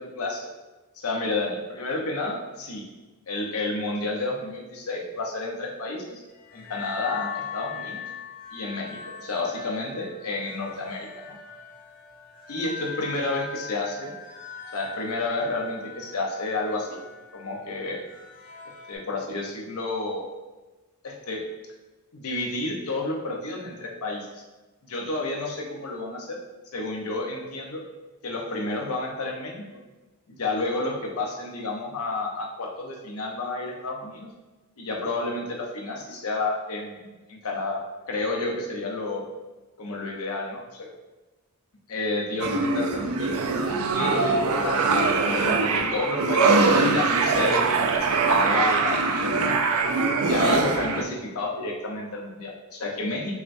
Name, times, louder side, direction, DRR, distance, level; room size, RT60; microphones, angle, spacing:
voice 1, 0.2-0.5 1.0-2.8 3.3-6.2 6.5-8.1 8.5-11.4 12.5-14.1 14.7-17.0 17.3-18.0 18.9-20.3 21.0-21.5 22.1-24.4 24.8-26.4 26.7-27.9 28.2-29.6 30.3-34.3 34.8-37.8 38.1-39.3 39.8-40.9 41.9-43.4 43.9-45.0 45.3-47.7 47.9-49.8 50.2-53.3, left 2 dB, 75° left, 0 dB, 0.7 m, -30 dB
sound 1, 6.3-19.0, left 5 dB, 35° left, 0.5 m, -41 dB
sound 2, 42.4-51.0, right 4 dB, 70° right, 0.4 m, -22 dB
5.6 x 2.2 x 2.6 m, 1.2 s
head